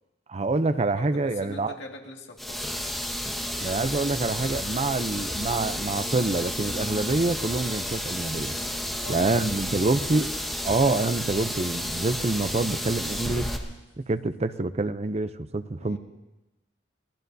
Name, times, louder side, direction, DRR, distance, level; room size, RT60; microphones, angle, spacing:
voice 1, 0.3-1.7 3.6-8.6 9.1-10.3 10.6-13.5 14.0-16.0, right 3 dB, 35° right, 12 dB, 0.6 m, -26 dB
voice 2, 1.0-2.9 9.0-10.3 15.8-16.0, left 2 dB, 70° left, 0 dB, 2.2 m, -42 dB
sound 1, 2.4-13.6, equal, ahead, 1.4 m, -31 dB
sound 2, 4.5-4.9 5.3-5.7 6.0-6.1 6.5-7.7 8.4-8.5 9.0-9.6 9.9-10.3 10.7-10.9 11.4-12.3 13.3-13.4, equal, 20° left, 3.0 m, -43 dB
27.0 x 19.0 x 2.7 m, 1.0 s
head